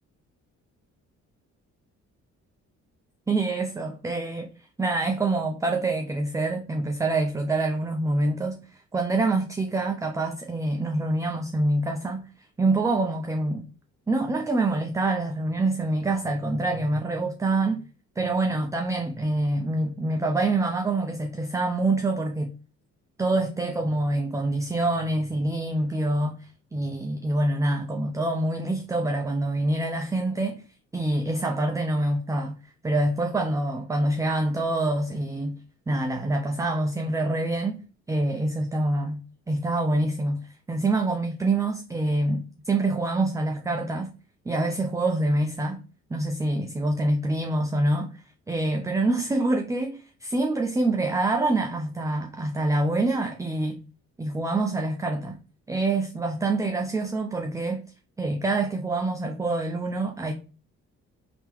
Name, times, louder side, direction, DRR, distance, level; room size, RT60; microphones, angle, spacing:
voice 1, 3.3-4.5 4.8-8.6 8.9-12.3 12.6-13.6 14.1-17.8 18.2-22.5 23.2-30.6 30.9-32.6 32.8-35.6 35.9-39.2 39.5-44.1 44.5-45.8 46.1-53.8 54.2-55.4 55.7-57.8 58.2-60.3, right 2 dB, 10° right, 0.4 m, -26 dB
3.5 x 2.9 x 3.0 m
cardioid pair, 90°, 30 cm